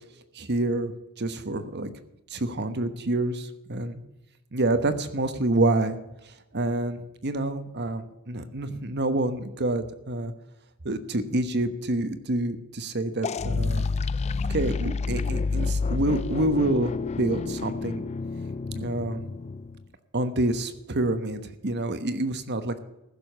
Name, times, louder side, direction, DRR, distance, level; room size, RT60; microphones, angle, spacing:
voice 1, 0.3-1.9 2.3-4.0 4.5-6.0 6.5-10.3 10.8-13.8 14.5-16.9 17.2-18.0 18.7-19.2 20.1-22.8, right 2 dB, 50° right, 10 dB, 1.1 m, -27 dB
sound 1, 13.2-19.8, left 4 dB, 30° left, 0.3 m, -29 dB
15.5 x 6.9 x 6.7 m, 0.96 s
head